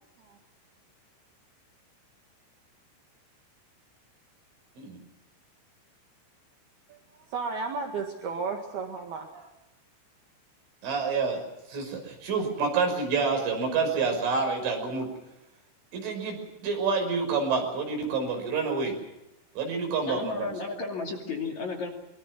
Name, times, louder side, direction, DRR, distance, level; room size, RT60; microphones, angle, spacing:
voice 1, 7.3-9.5, right 4 dB, 60° right, 2 dB, 3.6 m, -33 dB
voice 2, 10.8-11.4 11.7-15.1 15.9-19.0 19.6-20.5, right 4 dB, 75° right, 3 dB, 8.1 m, -28 dB
voice 3, 20.1-21.9, left 4 dB, 45° left, 1 dB, 3.5 m, -33 dB
25.0 x 24.5 x 6.2 m, 0.89 s
omnidirectional pair, 5.6 m